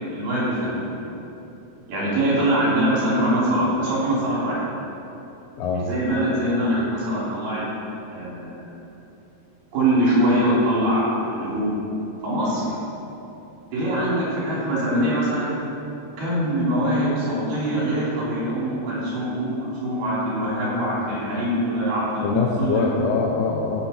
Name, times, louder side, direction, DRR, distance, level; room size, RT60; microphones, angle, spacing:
voice 1, 0.1-0.9 1.9-4.6 5.7-7.6 8.1-8.7 9.7-11.8 12.2-12.6 13.7-15.6 16.2-22.8, right 1 dB, 70° right, -7 dB, 5.0 m, -23 dB
voice 2, 5.6-5.9 22.2-23.9, left 4 dB, 80° left, -2 dB, 2.8 m, -23 dB
16.5 x 7.7 x 4.4 m, 3.0 s
omnidirectional pair, 4.7 m